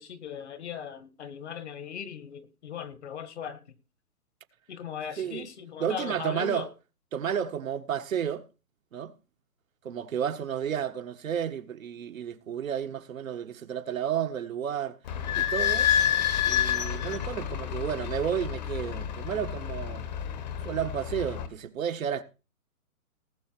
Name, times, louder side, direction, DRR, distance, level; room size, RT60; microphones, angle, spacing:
voice 1, 0.0-3.6 4.7-6.7, left 8 dB, 50° left, 1.6 m, -38 dB
voice 2, 5.8-6.7 7.1-8.4 8.9-9.1 9.8-15.0 15.4-15.9 16.4-20.1 20.6-22.2, right 8 dB, 65° right, 1.4 m, -32 dB
Idling / Squeak, 15.1-21.5, left 9 dB, 30° left, 1.2 m, -29 dB
19.0 x 6.4 x 4.5 m
hypercardioid pair, 170°, 44 cm